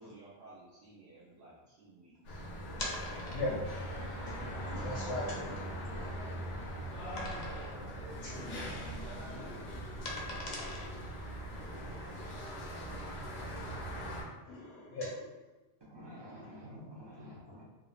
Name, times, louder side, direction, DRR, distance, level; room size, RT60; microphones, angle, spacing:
voice 1, 0.0-1.5 1.8-2.4 3.0-3.4 3.9-4.1 6.1-6.4 7.4-7.7 8.5-8.6 9.0-9.2 9.5-9.8 10.4-10.8 11.6-13.8, right 2 dB, 75° right, -9 dB, 1.0 m, -56 dB
sound 1, 2.2-14.2, equal, 90° left, 1.1 m, -41 dB
sound 2, 2.8-3.7 4.4-4.5 5.0-5.1 5.5-6.5 7.2-7.9 8.2-8.4 8.7-11.3, left 2 dB, 55° left, 0.5 m, -42 dB
voice 2, 4.7-5.7 7.1-7.2 8.2-8.7 9.3-9.5 10.4-10.9 14.5-15.1, left 2 dB, 70° left, -5 dB, 0.8 m, -39 dB
voice 3, 15.9-17.6, equal, 45° right, -6 dB, 0.3 m, -49 dB
3.5 x 2.0 x 2.4 m, 1.1 s
omnidirectional pair, 1.2 m